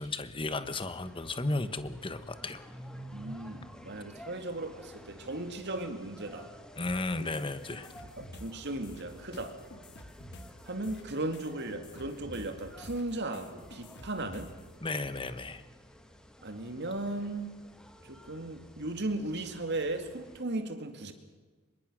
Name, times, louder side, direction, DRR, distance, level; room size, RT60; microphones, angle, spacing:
voice 1, 0.0-2.6 6.8-7.9 14.8-15.6, left 2 dB, 25° left, 11 dB, 1.1 m, -34 dB
sound 1, 0.7-20.4, equal, 5° left, 1.7 m, -52 dB
voice 2, 3.1-6.5 7.2-7.3 8.2-9.6 10.7-14.5 16.4-17.5 18.0-21.1, right 2 dB, 50° right, 7 dB, 2.4 m, -36 dB
sound 2, 6.8-14.7, left 1 dB, 50° left, 2.2 m, -50 dB
25.5 x 22.0 x 6.3 m, 1.3 s
head